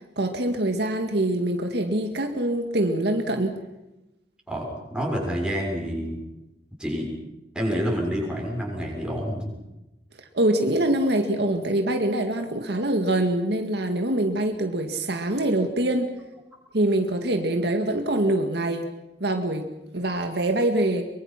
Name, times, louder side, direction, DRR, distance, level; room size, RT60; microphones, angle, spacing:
voice 1, 0.2-3.5 10.3-16.1 16.7-18.9 19.2-21.0, right 1 dB, 70° right, 5 dB, 2.0 m, -24 dB
voice 2, 4.5-6.2 6.8-7.1 7.5-9.5, equal, 5° right, -1 dB, 6.8 m, -28 dB
23.5 x 23.5 x 6.0 m, 0.97 s
head